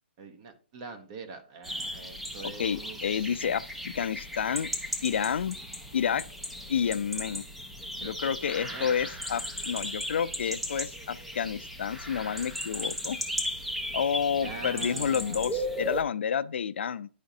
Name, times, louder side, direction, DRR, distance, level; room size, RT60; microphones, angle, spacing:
voice 1, 0.2-3.4 8.0-8.3 8.6-9.0 14.3-15.5, right 4 dB, 30° right, 0.9 m, -44 dB
sound 1, 1.6-16.0, equal, ahead, 0.5 m, -36 dB
voice 2, 2.6-4.7 5.0-5.6 5.9-6.3 6.7-7.4 8.0-13.2 13.9-17.1, left 7 dB, 75° left, 0.4 m, -30 dB
10.5 x 5.0 x 2.7 m
hypercardioid pair, 170°, 6 cm